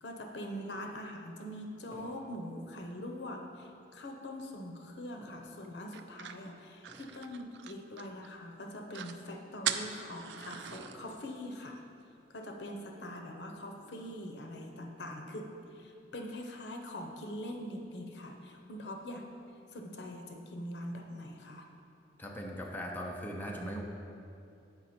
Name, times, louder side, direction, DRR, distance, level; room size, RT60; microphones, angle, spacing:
voice 1, 0.0-11.8 12.3-19.2 19.7-21.7, left 1 dB, 80° left, 3 dB, 0.8 m, -43 dB
sound 1, 1.9-3.8 5.2-6.1 6.8-7.2 7.6-7.7 8.4-8.6 9.9-11.4, equal, 20° right, 1.4 m, -55 dB
sound 2, 5.9-8.3 8.6-8.7 8.9-9.2 9.6-11.0, right 9 dB, 80° right, 0.4 m, -39 dB
voice 2, 22.2-23.8, equal, 10° left, -1 dB, 0.6 m, -39 dB
7.9 x 5.0 x 4.3 m, 2.6 s
head